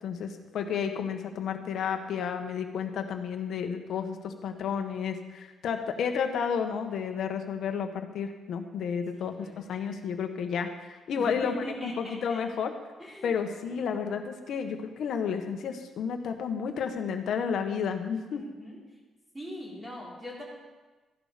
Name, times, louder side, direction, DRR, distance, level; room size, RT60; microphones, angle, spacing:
voice 1, 0.0-11.6 11.8-12.7 13.2-18.4, left 7 dB, 65° left, 5 dB, 1.4 m, -31 dB
voice 2, 9.1-9.6 11.1-12.4 13.0-13.3 13.6-13.8 18.3-18.8 19.3-20.4, equal, 10° right, -4 dB, 4.2 m, -41 dB
14.5 x 11.0 x 5.2 m, 1.2 s
cardioid pair, 135°, 0 cm